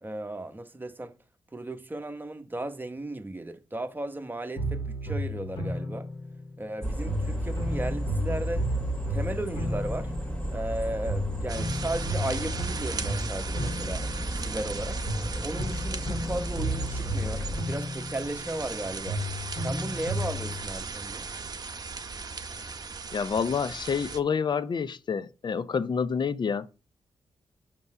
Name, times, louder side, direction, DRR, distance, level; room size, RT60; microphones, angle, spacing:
voice 1, 0.0-1.1 1.5-6.1 6.6-8.7 9.1-10.1 10.5-15.0 15.4-19.2 19.6-21.3, right 1 dB, 20° right, 1.1 m, -35 dB
sound 1, 4.6-6.7 7.1-10.8 11.1-14.7 15.1-18.8 19.1-20.6, equal, 65° left, 3.8 m, -34 dB
sound 2, 6.8-17.6, equal, 10° left, 2.1 m, -33 dB
sound 3, 11.5-24.2, right 4 dB, 40° right, 0.8 m, -38 dB
voice 2, 23.1-26.7, left 6 dB, 50° left, 0.5 m, -28 dB
5.4 x 5.3 x 4.7 m
cardioid pair, 60°, 10 cm